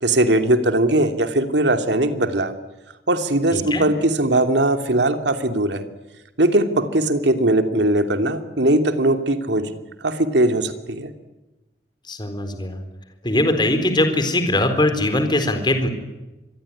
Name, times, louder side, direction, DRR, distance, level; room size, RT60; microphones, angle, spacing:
voice 1, 0.0-2.5 3.1-5.8 6.4-9.7 10.0-11.1, right 1 dB, 75° right, 7 dB, 2.9 m, -19 dB
voice 2, 3.5-3.8 12.1-12.8 13.2-15.9, left 1 dB, 25° left, 8 dB, 4.1 m, -21 dB
26.5 x 22.5 x 10.0 m, 1.1 s
head